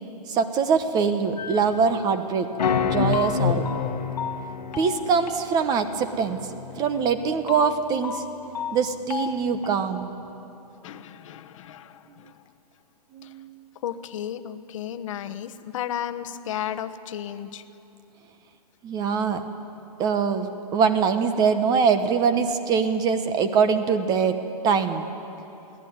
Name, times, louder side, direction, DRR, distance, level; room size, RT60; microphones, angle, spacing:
voice 1, 0.3-2.5 2.8-3.7 4.8-6.4 6.8-8.2 8.7-10.1 13.1-13.5 18.8-19.4 20.0-24.4 24.6-25.0, right 6 dB, 20° right, 10 dB, 1.0 m, -23 dB
sound 1, 1.4-2.1 2.6-10.1, left 7 dB, 85° left, 1.7 m, -29 dB
voice 2, 10.8-12.4 13.2-13.3 13.8-17.6, left 10 dB, 50° left, 11 dB, 1.2 m, -34 dB
23.0 x 16.5 x 9.5 m, 2.9 s
hypercardioid pair, 155°, 21 cm